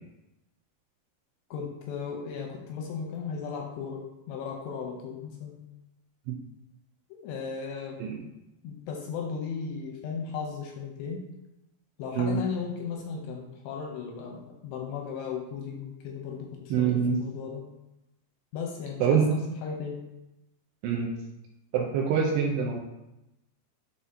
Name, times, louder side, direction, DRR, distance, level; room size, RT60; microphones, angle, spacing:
voice 1, 1.5-5.6 7.1-8.0 8.6-11.3 12.0-17.6 18.5-20.0, left 5 dB, 85° left, 1 dB, 2.6 m, -36 dB
voice 2, 16.7-17.2 19.0-19.3 20.8-21.1 21.7-22.8, right 6 dB, 85° right, 0 dB, 2.5 m, -25 dB
11.5 x 3.9 x 2.7 m, 0.92 s
omnidirectional pair, 5.4 m